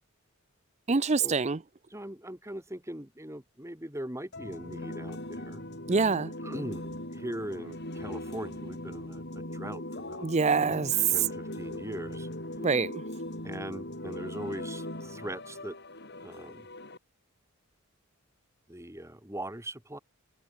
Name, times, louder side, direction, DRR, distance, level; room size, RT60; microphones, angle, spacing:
voice 1, 0.9-1.6 5.9-6.3 10.2-10.9 12.6-13.0, right 4 dB, 30° right, 0.6 m, -25 dB
voice 2, 1.9-5.7 6.4-10.3 11.1-12.3 13.4-15.8 16.1-16.7 18.7-20.0, right 1 dB, 15° right, 3.2 m, -40 dB
sound 1, 4.3-17.0, left 1 dB, 50° left, 7.3 m, -40 dB
head